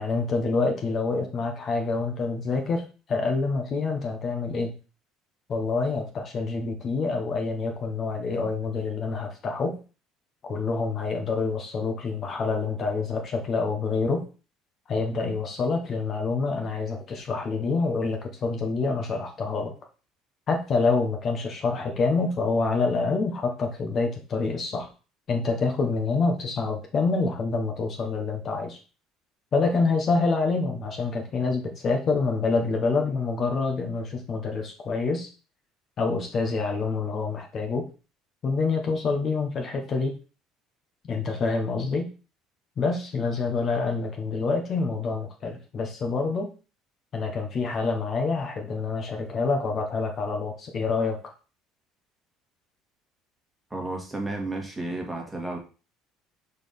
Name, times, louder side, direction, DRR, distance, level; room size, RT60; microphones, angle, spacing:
voice 1, 0.0-4.8 5.5-9.8 10.4-14.2 14.9-19.7 20.5-24.9 25.3-28.8 29.5-35.3 36.0-37.9 38.4-40.1 41.1-42.1 42.8-46.5 47.1-51.2, left 4 dB, 40° left, 3 dB, 1.2 m, -27 dB
voice 2, 53.7-55.6, right 2 dB, 10° right, 0 dB, 1.9 m, -32 dB
4.8 x 4.1 x 5.3 m, 0.34 s
cardioid pair, 110°, 0 cm